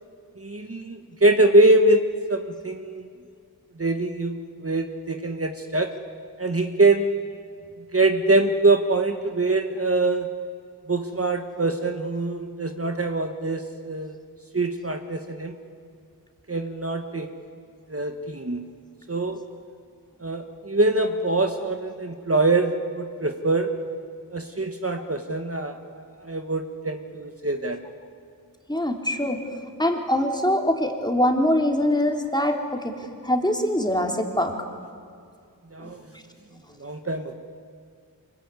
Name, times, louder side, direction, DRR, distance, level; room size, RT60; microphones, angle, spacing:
voice 1, 0.4-3.1 3.8-5.9 6.4-7.1 7.9-10.3 10.9-14.1 14.5-15.5 16.5-17.3 17.9-18.7 19.1-19.4 20.2-23.7 24.3-25.8 26.2-27.8 35.7-36.0 36.8-37.3, right 2 dB, 40° right, 5 dB, 1.5 m, -23 dB
voice 2, 28.7-29.4 29.8-33.0 33.2-34.5 35.8-35.9, left 1 dB, 10° left, 2 dB, 3.3 m, -23 dB
25.0 x 22.0 x 9.7 m, 2.3 s
wide cardioid pair, 60°, 37 cm